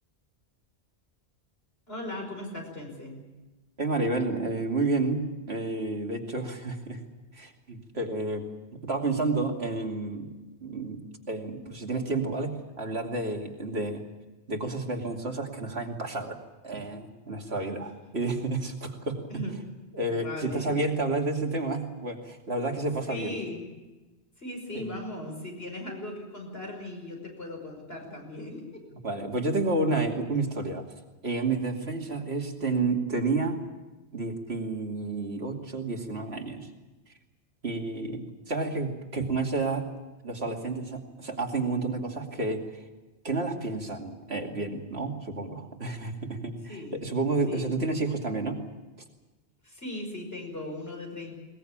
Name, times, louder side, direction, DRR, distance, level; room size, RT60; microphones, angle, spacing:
voice 1, 1.9-3.3 19.3-19.7 20.1-20.7 23.1-23.7 24.4-28.8 46.7-47.0 47.5-47.7 49.6-51.4, left 1 dB, 65° left, 1 dB, 5.9 m, -38 dB
voice 2, 3.8-7.0 7.3-14.0 14.5-16.4 16.6-19.4 19.9-23.4 24.7-24.9 29.0-30.8 31.2-33.6 34.1-36.7 37.6-39.9 40.2-42.6 43.2-48.6, right 3 dB, 70° right, 2 dB, 2.9 m, -30 dB
21.0 x 20.5 x 8.8 m, 1.1 s
omnidirectional pair, 1.1 m